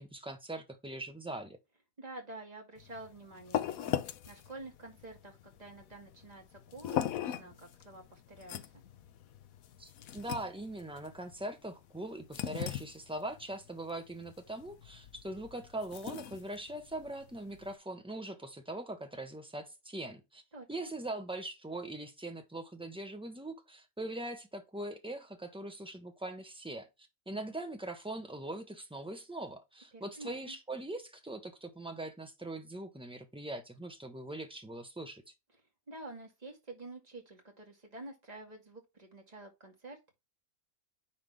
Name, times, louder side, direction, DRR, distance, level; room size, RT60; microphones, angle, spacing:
voice 1, 0.0-1.6 9.8-20.4 20.7-26.9 27.3-35.2, right 1 dB, 5° right, 1.1 m, -41 dB
voice 2, 2.0-8.6 20.5-20.7 29.9-30.6 35.9-40.1, right 2 dB, 25° right, 2.4 m, -49 dB
sound 1, 2.8-17.8, left 10 dB, 75° left, 1.1 m, -40 dB
10.0 x 3.7 x 3.5 m
omnidirectional pair, 1.5 m